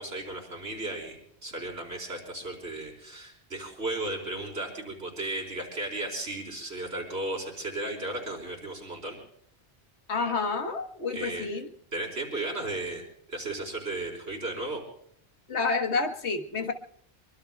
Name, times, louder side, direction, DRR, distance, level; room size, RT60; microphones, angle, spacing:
voice 1, 0.0-9.2 11.1-11.5 11.9-13.0 13.3-14.8, right 2 dB, 80° right, 0 dB, 4.2 m, -35 dB
voice 2, 10.1-11.7 15.5-16.7, left 4 dB, 90° left, 5 dB, 1.6 m, -29 dB
24.5 x 23.5 x 2.3 m, 0.68 s
omnidirectional pair, 1.1 m